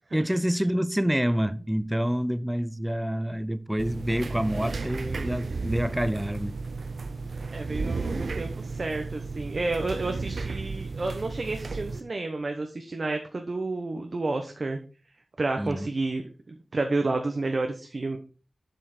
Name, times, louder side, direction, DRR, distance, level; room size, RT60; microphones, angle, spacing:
voice 1, 0.1-6.6 15.6-15.9, equal, 5° right, 0.6 m, -27 dB
sound 1, 3.8-12.0, right 4 dB, 80° right, 0.8 m, -33 dB
voice 2, 7.5-14.8 15.4-16.2 16.5-18.2, right 2 dB, 55° right, 1.0 m, -30 dB
7.7 x 7.4 x 4.4 m
wide cardioid pair, 90°, 0 cm